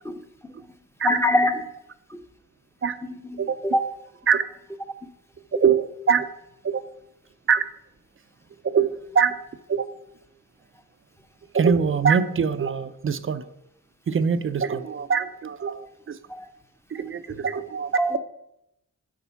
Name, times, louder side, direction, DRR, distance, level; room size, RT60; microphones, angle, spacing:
voice 1, 0.0-0.7 1.0-1.7 2.1-2.2 3.0-3.9 16.3-16.5 18.0-18.2, left 1 dB, 5° left, 0.7 m, -25 dB
voice 2, 5.5-6.3 6.6-6.8 7.5-7.7 8.6-9.4 9.7-9.9 11.5-13.5 14.1-16.2 16.9-18.2, right 6 dB, 40° right, 0.4 m, -23 dB
7.0 x 4.5 x 5.6 m
wide cardioid pair, 105°, 35 cm